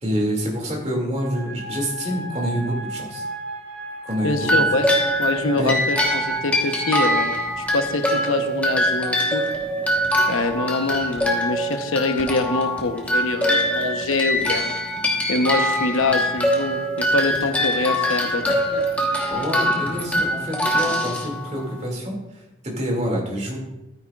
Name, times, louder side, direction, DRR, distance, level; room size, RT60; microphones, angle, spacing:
voice 1, 0.0-3.2 4.0-4.5 5.6-5.7 19.3-23.6, equal, 35° right, -1 dB, 2.4 m, -27 dB
sound 1, 1.2-7.3, equal, 85° right, 2.6 m, -35 dB
voice 2, 4.2-4.9 5.2-7.3 7.6-9.4 10.3-14.7 15.3-18.8, left 2 dB, 90° left, 7 dB, 0.9 m, -24 dB
sound 2, 4.4-21.8, equal, 5° left, 1.2 m, -23 dB
12.5 x 9.6 x 2.4 m, 0.95 s
head